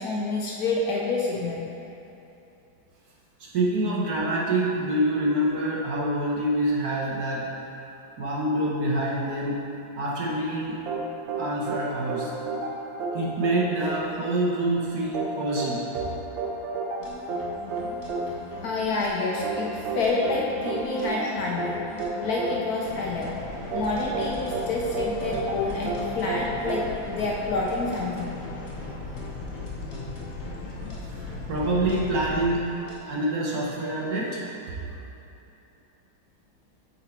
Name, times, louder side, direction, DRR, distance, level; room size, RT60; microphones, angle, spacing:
voice 1, 0.0-1.6 18.6-21.8 22.2-23.4 23.7-28.3, left 3 dB, 65° left, -3 dB, 1.0 m, -28 dB
voice 2, 3.4-7.5 8.2-9.6 10.0-10.8 11.4-12.3 13.1-15.8 31.1-31.2 31.5-32.6 33.0-34.4, right 1 dB, 60° right, -4 dB, 1.3 m, -26 dB
sound 1, 10.9-27.7, right 3 dB, 80° right, 1.5 m, -32 dB
sound 2, 17.0-32.9, left 3 dB, 40° left, 1.3 m, -42 dB
sound 3, 22.9-32.5, left 3 dB, 80° left, 1.5 m, -38 dB
8.3 x 4.0 x 4.3 m, 2.9 s
omnidirectional pair, 2.0 m